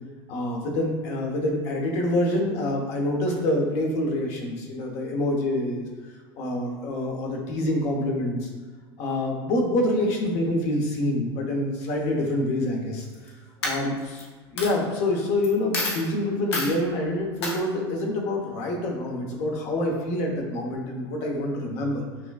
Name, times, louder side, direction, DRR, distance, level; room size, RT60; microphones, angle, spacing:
voice 1, 0.3-5.8 6.3-8.5 9.0-13.3 13.6-14.3 14.5-22.0, left 1 dB, 55° left, 0 dB, 0.9 m, -26 dB
Coin (dropping), 13.0-13.3 13.6-14.2 14.6-14.7 15.4-15.5 15.7-16.0 16.5-16.7 17.4-17.6, left 2 dB, 85° left, 0.8 m, -28 dB
5.8 x 2.3 x 2.4 m, 1.4 s
hypercardioid pair, 90°, 13 cm